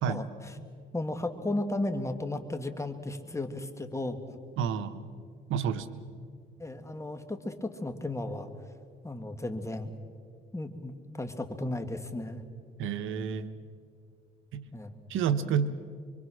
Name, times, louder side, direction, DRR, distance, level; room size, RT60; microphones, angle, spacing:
voice 1, 0.0-0.5 0.9-4.2 6.6-8.5 9.0-9.9 10.5-12.4 14.7-15.0, left 2 dB, 15° left, 7 dB, 2.0 m, -34 dB
voice 2, 4.6-5.1 5.5-6.0 12.8-13.5 14.5-14.6 15.1-15.7, right 7 dB, 85° right, 11 dB, 1.1 m, -29 dB
26.0 x 24.0 x 6.3 m, 2.1 s
cardioid pair, 90°, 20 cm